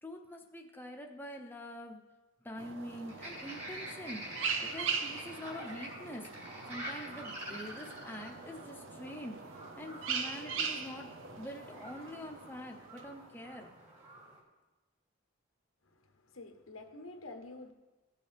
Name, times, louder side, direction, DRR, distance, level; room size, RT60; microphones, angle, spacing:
voice 1, 0.0-2.0 2.4-13.7, left 1 dB, 10° left, 2 dB, 0.8 m, -45 dB
sound 1, 2.6-13.5, right 5 dB, 70° right, 0.8 m, -41 dB
sound 2, 3.1-14.4, right 1 dB, 35° right, 2.6 m, -48 dB
voice 2, 15.8-17.7, left 2 dB, 90° left, 5 dB, 1.2 m, -49 dB
15.5 x 6.8 x 3.4 m, 1.2 s
head